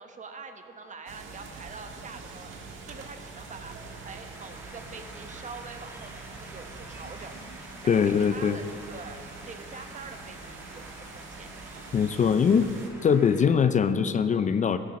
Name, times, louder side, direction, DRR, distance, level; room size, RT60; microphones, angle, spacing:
voice 1, 0.0-2.5 2.8-3.8 4.0-6.1 6.5-7.3 7.8-11.5, right 4 dB, 40° right, 6 dB, 1.0 m, -44 dB
sound 1, 1.1-12.9, right 4 dB, 80° right, 1.5 m, -44 dB
sound 2, 2.8-13.5, right 1 dB, 10° right, 1.8 m, -49 dB
voice 2, 7.9-8.6 11.9-12.7 13.0-14.8, left 6 dB, 40° left, 10 dB, 0.5 m, -22 dB
14.5 x 10.5 x 4.2 m, 2.7 s
cardioid pair, 90°, 20 cm